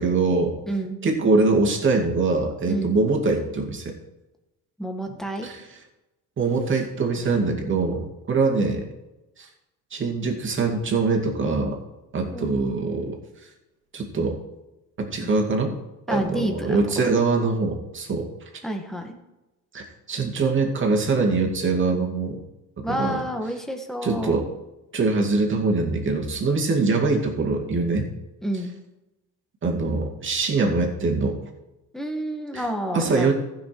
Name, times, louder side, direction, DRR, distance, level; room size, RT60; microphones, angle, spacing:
voice 1, 0.0-0.5 1.0-4.0 5.4-5.6 6.4-8.9 9.4-9.5 9.9-11.8 12.1-13.1 13.9-14.4 15.0-15.8 16.1-18.3 19.7-22.4 22.8-23.2 24.0-24.5 24.9-28.1 29.6-31.4 32.5-32.6 32.9-33.3, right 3 dB, 35° right, 1 dB, 2.2 m, -23 dB
voice 2, 0.7-1.0 2.7-3.0 4.8-5.5 12.3-12.5 15.2-15.3 16.1-17.2 18.6-19.1 22.8-24.4 28.4-28.7 31.9-33.3, right 1 dB, ahead, 4 dB, 1.5 m, -29 dB
15.0 x 6.1 x 4.6 m, 1.0 s
cardioid pair, 120°, 35 cm